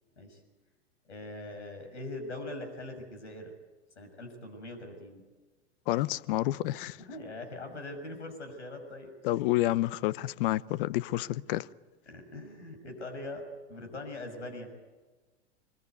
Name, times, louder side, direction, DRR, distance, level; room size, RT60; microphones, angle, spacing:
voice 1, 1.1-3.5 4.0-5.2 7.0-9.1 12.1-14.7, left 2 dB, 80° left, 6.5 m, -42 dB
voice 2, 5.9-7.0 9.2-11.7, left 16 dB, 50° left, 0.8 m, -29 dB
25.0 x 21.5 x 9.4 m
hypercardioid pair, 100°, 34 cm